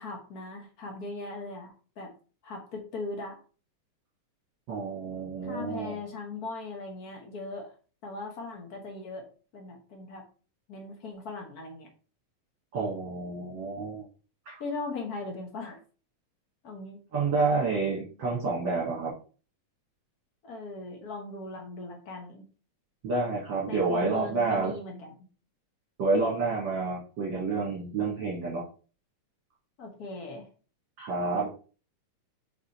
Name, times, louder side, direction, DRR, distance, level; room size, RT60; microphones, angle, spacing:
voice 1, 0.0-2.1 2.4-3.4 5.4-7.7 8.0-9.2 9.5-10.3 10.7-11.9 14.6-15.8 16.6-17.0 20.4-22.5 23.7-25.2 29.8-30.5, left 3 dB, 60° left, 2 dB, 0.9 m, -39 dB
voice 2, 4.7-6.0 12.7-14.1 14.5-14.6 17.1-19.1 23.0-24.7 26.0-28.6 31.0-31.5, right 3 dB, 45° right, -4 dB, 1.7 m, -29 dB
5.0 x 4.9 x 4.2 m, 0.38 s
omnidirectional pair, 3.7 m